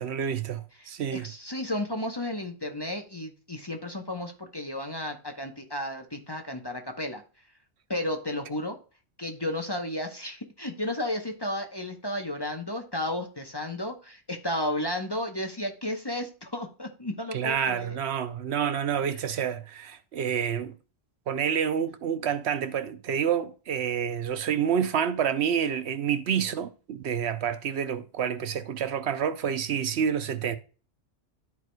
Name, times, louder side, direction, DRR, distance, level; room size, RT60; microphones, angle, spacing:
voice 1, 0.0-1.3 17.3-20.7 21.3-30.6, right 8 dB, 70° right, 0.9 m, -28 dB
voice 2, 0.8-7.2 7.9-8.8 9.2-18.0 19.1-19.2, left 1 dB, 25° left, 0.8 m, -33 dB
13.0 x 4.7 x 2.2 m
omnidirectional pair, 1.2 m